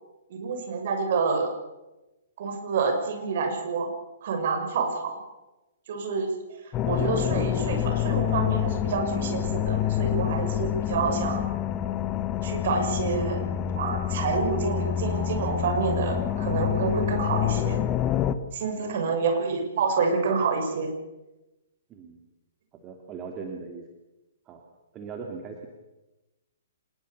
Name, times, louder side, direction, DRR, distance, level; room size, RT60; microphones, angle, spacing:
voice 1, 0.3-1.5 2.4-3.9 4.2-5.1 5.9-6.3 6.8-11.5 12.4-13.4 13.7-17.8 18.5-20.9, right 5 dB, 50° right, 4 dB, 6.5 m, -28 dB
sound 1, 6.7-18.3, left 11 dB, 25° left, 1.3 m, -27 dB
voice 2, 18.7-19.2 21.9-22.2 22.8-23.9 24.5-24.6 24.9-25.7, right 5 dB, 25° right, 2 dB, 3.0 m, -39 dB
26.0 x 21.0 x 7.0 m, 1.0 s
figure-of-eight pair, 120°, 0 cm